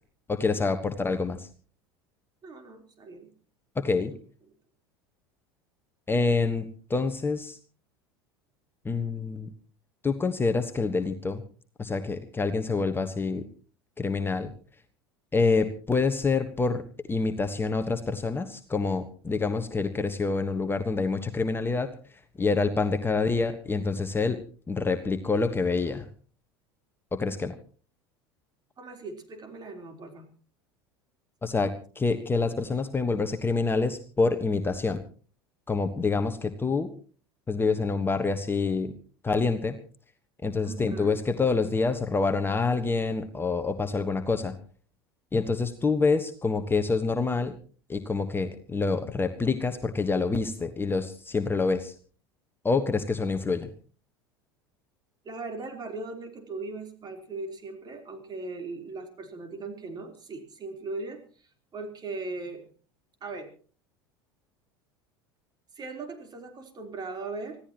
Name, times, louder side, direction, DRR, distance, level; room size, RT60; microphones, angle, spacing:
voice 1, 0.3-1.5 3.7-4.1 6.1-7.6 8.8-9.5 10.0-11.4 11.8-13.4 14.0-14.5 15.3-16.8 17.1-21.9 22.4-24.4 24.7-26.1 27.1-27.5 31.4-35.0 35.7-36.9 37.5-38.9 39.2-39.8 40.4-44.5 45.3-47.6 47.9-51.9 52.6-53.7, left 4 dB, 15° left, 7 dB, 1.4 m, -27 dB
voice 2, 2.4-3.3 28.8-30.3 40.6-41.2 55.2-62.7 63.2-63.6 65.7-67.6, right 3 dB, 30° right, 5 dB, 4.0 m, -39 dB
25.5 x 16.0 x 3.0 m, 0.40 s
hypercardioid pair, 80°, 13 cm